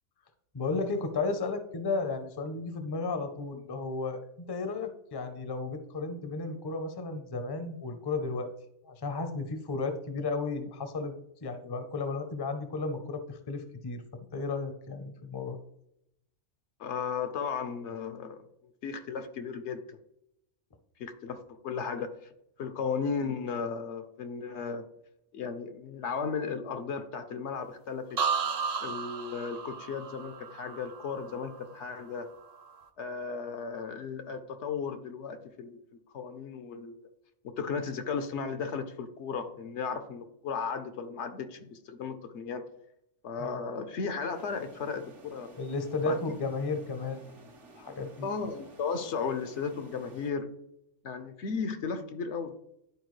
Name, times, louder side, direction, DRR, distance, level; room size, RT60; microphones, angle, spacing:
voice 1, 0.5-8.5 8.8-11.1 11.4-15.6 43.4-43.5 45.6-47.5 47.8-48.3, left 3 dB, 25° left, 8 dB, 0.6 m, -34 dB
voice 2, 16.8-18.4 18.8-20.0 21.0-22.1 22.6-24.8 25.3-28.2 28.8-32.3 33.0-35.8 36.1-37.1 37.6-42.6 43.2-45.6 46.1-46.2 48.2-50.5 51.0-52.5, left 5 dB, 75° left, 9 dB, 1.0 m, -35 dB
sound 1, 28.2-32.0 32.3-32.8, right 5 dB, 50° right, 0.5 m, -34 dB
sound 2, 44.3-50.3, right 2 dB, 80° right, 1.5 m, -54 dB
11.0 x 4.3 x 3.1 m, 0.79 s
omnidirectional pair, 1.2 m